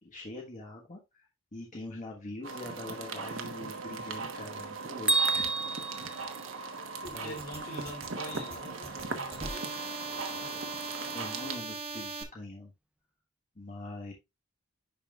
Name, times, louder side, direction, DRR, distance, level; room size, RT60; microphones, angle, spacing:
voice 1, 0.0-5.5 5.9-6.5 7.1-7.3 11.1-12.7 13.5-14.1, left 2 dB, 35° left, 1.4 m, -44 dB
sound 1, 2.4-11.6, right 4 dB, 65° right, 1.1 m, -39 dB
Bell, 5.1-7.1, right 3 dB, 5° right, 0.4 m, -30 dB
voice 2, 7.0-9.8 10.1-10.6, left 1 dB, 70° left, 4.2 m, -45 dB
sound 2, 7.0-12.2, right 3 dB, 30° right, 1.1 m, -40 dB
10.5 x 4.3 x 2.4 m
head